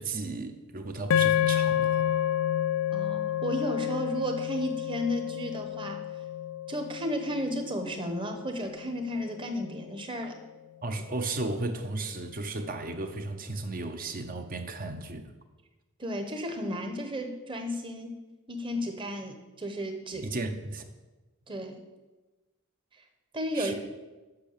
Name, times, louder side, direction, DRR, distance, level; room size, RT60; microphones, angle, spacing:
voice 1, 0.0-2.1 10.8-15.3 20.1-20.9 23.5-23.7, right 2 dB, 40° right, 7 dB, 0.7 m, -34 dB
sound 1, 1.1-9.5, left 10 dB, 65° left, 0.3 m, -30 dB
voice 2, 2.9-6.0 6.7-10.4 16.0-18.2 18.5-20.3 21.5-21.8 23.0-23.1 23.3-23.8, equal, 20° right, 5 dB, 1.0 m, -33 dB
8.1 x 6.0 x 6.7 m, 1.2 s
head